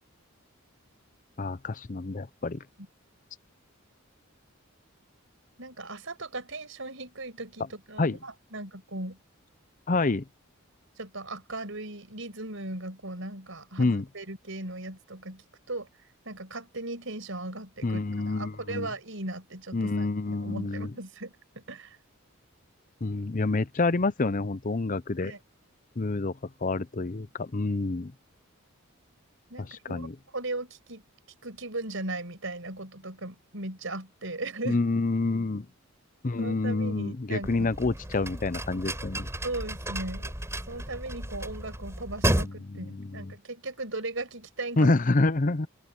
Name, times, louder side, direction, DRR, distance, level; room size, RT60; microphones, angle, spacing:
voice 1, 1.4-2.6 8.0-8.2 9.9-10.2 13.8-14.0 17.8-18.9 19.7-20.9 23.0-25.3 26.0-28.1 29.6-30.1 34.7-35.7 36.2-39.3 42.3-43.3 44.8-45.7, left 3 dB, 40° left, 0.6 m, -28 dB
voice 2, 5.6-9.2 11.0-15.9 16.2-22.0 25.2-25.4 29.5-31.0 31.4-34.8 36.4-37.7 39.4-40.3 40.7-44.9, right 2 dB, 60° right, 6.9 m, -38 dB
sound 1, 37.4-42.5, right 1 dB, 15° right, 4.6 m, -32 dB
open air
head